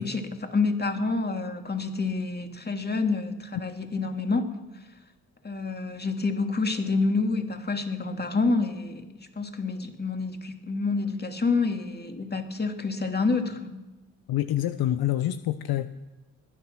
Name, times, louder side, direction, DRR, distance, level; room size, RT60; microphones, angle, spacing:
voice 1, 0.0-4.5 5.4-13.8, left 3 dB, 25° left, 5 dB, 2.5 m, -28 dB
voice 2, 14.3-15.9, left 13 dB, 65° left, 11 dB, 0.9 m, -26 dB
21.0 x 10.0 x 6.3 m, 1.1 s
hypercardioid pair, 50°, 39 cm